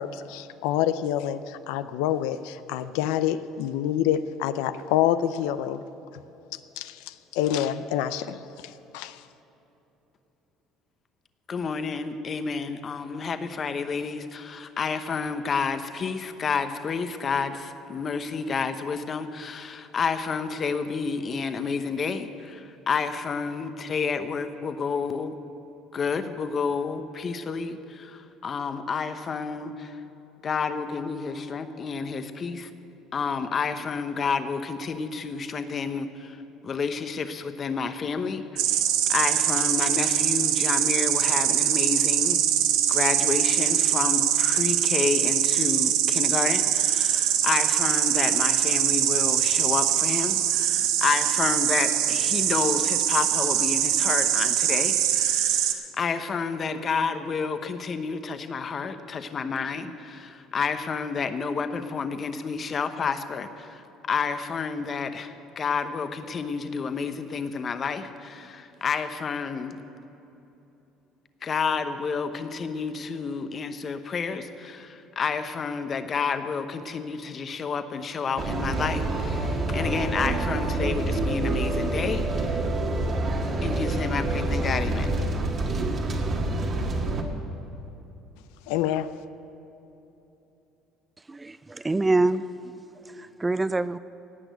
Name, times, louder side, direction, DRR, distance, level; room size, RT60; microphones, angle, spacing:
voice 1, 0.0-5.8 6.5-9.2 88.7-89.1, left 11 dB, 85° left, 12 dB, 0.4 m, -27 dB
voice 2, 11.5-25.4 25.9-30.0 30.4-32.7 33.1-38.8 39.1-42.4 42.9-69.8 71.4-82.6 83.6-85.2, left 5 dB, 35° left, 9 dB, 0.9 m, -30 dB
Insect, 38.6-55.7, right 10 dB, 80° right, 0.9 m, -23 dB
sound 1, 78.4-87.2, right 2 dB, 40° right, 1.7 m, -27 dB
voice 3, 91.3-92.4 93.2-94.0, right 2 dB, 15° right, 14 dB, 0.4 m, -25 dB
17.0 x 6.1 x 9.1 m, 3.0 s
cardioid pair, 105°, 0 cm